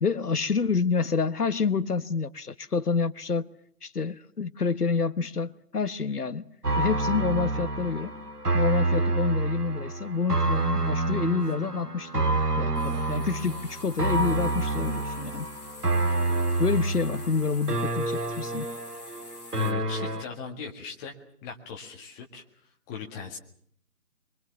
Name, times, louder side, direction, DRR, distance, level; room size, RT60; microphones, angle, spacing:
voice 1, 0.0-3.5 3.8-6.5 6.8-8.1 8.5-15.5 16.6-18.7, left 5 dB, 75° left, 1.3 m, -28 dB
sound 1, 6.6-20.2, right 2 dB, 85° right, 2.1 m, -28 dB
sound 2, 10.2-10.3 11.4-11.8 12.7-19.7, left 6 dB, 25° left, 2.2 m, -48 dB
voice 2, 19.6-21.1 21.4-22.4 22.9-23.4, left 6 dB, 10° left, 1.8 m, -39 dB
24.5 x 24.0 x 7.1 m
figure-of-eight pair, 155°, 46 cm